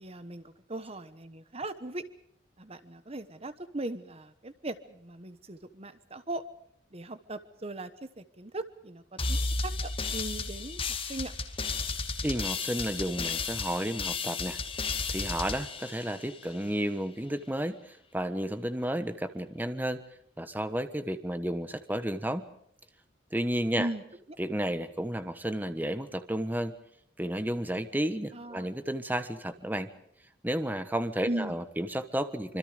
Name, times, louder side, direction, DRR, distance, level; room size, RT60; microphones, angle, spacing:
voice 1, 0.0-2.0 2.6-6.4 6.9-10.8 11.1-11.3 23.7-24.0 28.3-28.7 31.3-31.6, right 2 dB, 30° right, 12 dB, 1.2 m, -38 dB
sound 1, 9.2-16.7, left 4 dB, 30° left, 2.4 m, -33 dB
voice 2, 12.2-20.0 20.4-22.5 23.3-23.9 24.4-26.7 27.2-29.9 30.4-32.6, right 1 dB, 10° right, 10 dB, 1.3 m, -32 dB
26.0 x 25.5 x 5.2 m, 0.68 s
head